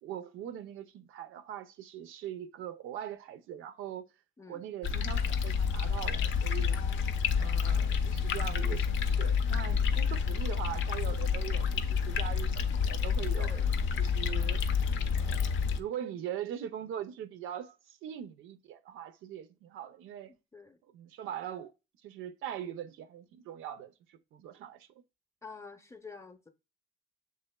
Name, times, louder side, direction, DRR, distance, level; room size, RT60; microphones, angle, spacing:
voice 1, 0.0-4.1 4.5-6.8 7.4-13.5 14.0-14.6 15.1-20.4 20.9-21.7 22.0-25.0, right 10 dB, 85° right, 0.5 m, -41 dB
sound 1, 4.8-15.8, left 6 dB, 75° left, 0.5 m, -29 dB
voice 2, 6.7-7.4 13.3-13.7 20.3-20.8 25.4-26.5, left 4 dB, 15° left, 0.6 m, -48 dB
7.2 x 3.2 x 2.2 m
cardioid pair, 90°, 20 cm